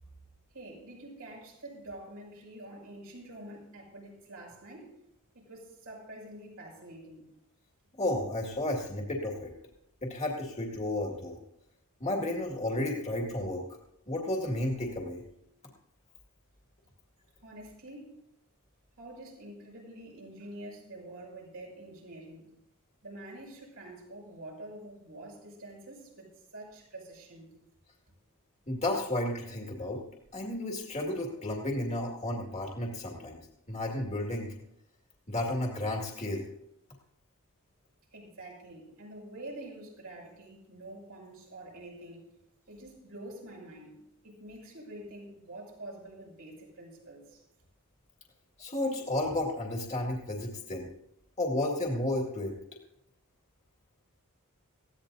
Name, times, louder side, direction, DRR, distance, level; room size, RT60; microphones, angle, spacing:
voice 1, 0.5-4.9 5.3-7.2 17.4-18.2 19.0-22.5 23.0-27.5 38.1-42.3 42.7-47.4, right 1 dB, 75° right, -2 dB, 6.3 m, -47 dB
voice 2, 8.0-9.5 10.0-11.4 12.0-13.6 14.1-15.2 28.7-30.0 30.3-33.4 33.7-34.5 35.3-36.4 48.6-50.9 51.4-52.5, left 1 dB, 30° left, -1 dB, 2.0 m, -32 dB
19.5 x 15.5 x 2.7 m, 0.81 s
head